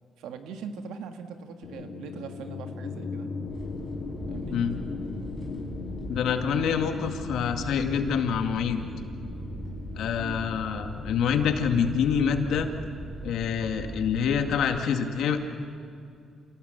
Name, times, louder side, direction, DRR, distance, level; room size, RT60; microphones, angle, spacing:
voice 1, 0.2-3.3 4.3-4.6 10.2-10.4, right 6 dB, 90° right, 7 dB, 1.8 m, -41 dB
sound 1, 1.6-13.8, left 4 dB, 40° left, 3.5 m, -39 dB
sound 2, 3.5-14.6, right 1 dB, 45° right, 6.8 m, -40 dB
voice 2, 6.1-8.8 10.0-12.7 13.2-15.4, left 7 dB, 80° left, 6 dB, 2.0 m, -26 dB
27.5 x 18.0 x 8.1 m, 2.5 s
cardioid pair, 90°, 0 cm